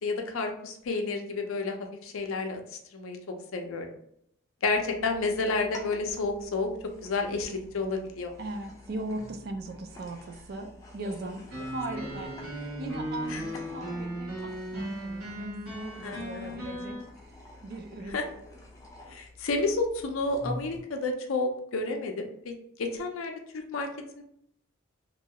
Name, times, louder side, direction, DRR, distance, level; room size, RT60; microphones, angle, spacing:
voice 1, 0.0-1.8 2.0-3.2 3.5-3.9 4.6-6.7 7.0-8.3 11.0-11.1 12.0-12.3 13.3-13.4 16.0-16.5 18.1-18.2 19.1-23.9 24.1-24.2, left 3 dB, 75° left, 4 dB, 0.5 m, -31 dB
sound 1, 4.7-20.8, left 1 dB, 15° left, 0.4 m, -48 dB
voice 2, 8.4-17.3 17.6-18.2, right 2 dB, 45° right, 6 dB, 0.3 m, -39 dB
sound 2, 11.5-17.0, equal, 90° right, 1.1 m, -37 dB
3.0 x 2.3 x 2.8 m, 0.71 s
head